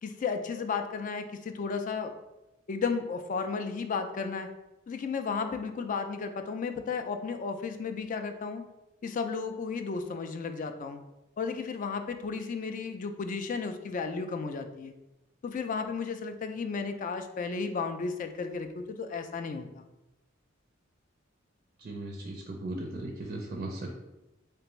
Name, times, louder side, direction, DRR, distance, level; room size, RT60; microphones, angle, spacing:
voice 1, 0.0-2.1 2.7-4.5 4.9-8.6 9.0-11.0 11.4-14.9 15.4-19.9, left 5 dB, 40° left, 7 dB, 0.3 m, -33 dB
voice 2, 21.8-23.9, right 1 dB, 45° right, 1 dB, 0.4 m, -37 dB
3.4 x 3.3 x 3.0 m, 0.96 s
head